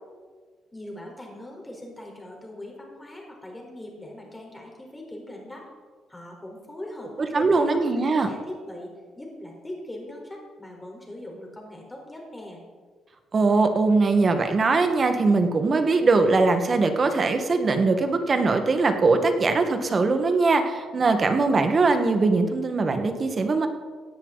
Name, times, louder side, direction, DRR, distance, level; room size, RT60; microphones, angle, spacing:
voice 1, 0.7-5.7 6.1-7.8 8.1-12.6, left 1 dB, 15° left, 0 dB, 4.4 m, -40 dB
voice 2, 7.3-8.3 13.3-23.7, right 3 dB, 40° right, 6 dB, 1.6 m, -21 dB
17.5 x 10.0 x 4.1 m, 1.5 s
cardioid pair, 90°, 0 cm